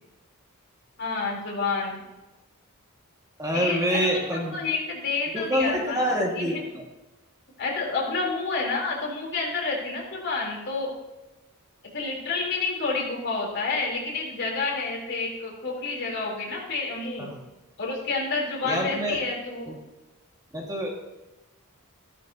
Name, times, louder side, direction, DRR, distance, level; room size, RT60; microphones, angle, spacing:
voice 1, 1.0-2.0 3.5-4.2 4.5-6.6 7.6-11.0 11.9-17.3 17.8-19.7, left 3 dB, 55° left, -2 dB, 3.5 m, -29 dB
voice 2, 3.4-4.6 5.3-6.8 17.2-17.3 18.6-19.2 20.5-20.9, equal, 15° right, -1 dB, 1.8 m, -26 dB
15.0 x 12.5 x 2.8 m, 1.1 s
head